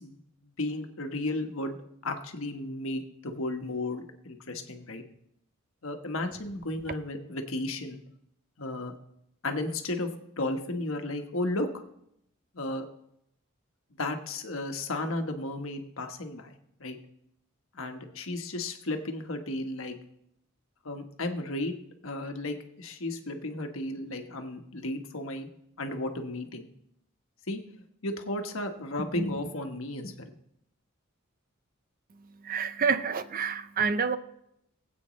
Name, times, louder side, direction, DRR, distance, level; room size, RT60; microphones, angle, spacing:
voice 1, 0.0-1.8 2.0-5.0 5.8-8.0 8.6-8.9 9.4-10.1 10.4-11.7 12.5-12.9 14.0-16.5 16.8-17.0 17.7-20.0 20.8-21.7 22.0-25.5 25.8-26.7 27.5-27.6 28.0-30.3, left 2 dB, 75° left, 1.3 m, -34 dB
voice 2, 32.4-34.2, right 5 dB, 40° right, 0.5 m, -28 dB
20.0 x 8.3 x 3.1 m
head